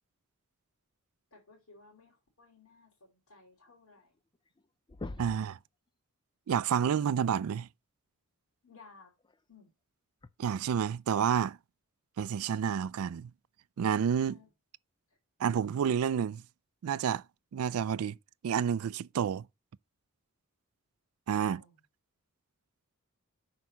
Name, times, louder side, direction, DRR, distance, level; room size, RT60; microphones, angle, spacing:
voice 1, 1.3-4.1 8.6-9.1 9.5-9.7 14.1-14.5 21.3-21.8, left 3 dB, 80° left, 3.1 m, -58 dB
sound 1, 4.0-4.1 4.4-4.6 4.9-5.6 7.3-7.4 9.2-9.3 10.2-10.3, left 2 dB, 20° left, 0.4 m, -42 dB
voice 2, 5.2-5.6 6.5-7.7 10.4-11.6 12.2-13.3 13.8-14.4 15.4-16.4 16.8-17.2 17.5-18.2 18.4-19.5 21.3-21.6, right 8 dB, 75° right, 0.3 m, -29 dB
6.2 x 4.7 x 5.6 m
head